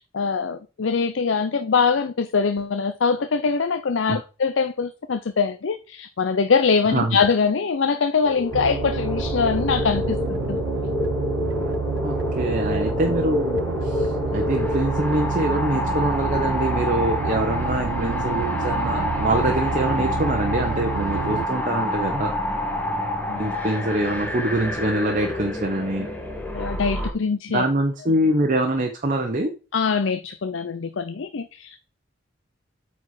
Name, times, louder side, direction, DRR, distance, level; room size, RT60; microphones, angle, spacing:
voice 1, 0.1-10.6 23.3-23.5 26.5-27.6 29.7-31.8, left 5 dB, 70° left, 0.5 m, -23 dB
sound 1, 8.2-27.1, left 1 dB, 10° left, 1.4 m, -27 dB
sound 2, 8.5-21.5, right 6 dB, 85° right, 0.4 m, -29 dB
voice 2, 12.0-13.5 13.8-22.3 23.4-26.1 27.5-29.5, right 1 dB, 40° right, 0.9 m, -24 dB
8.5 x 4.3 x 4.8 m
head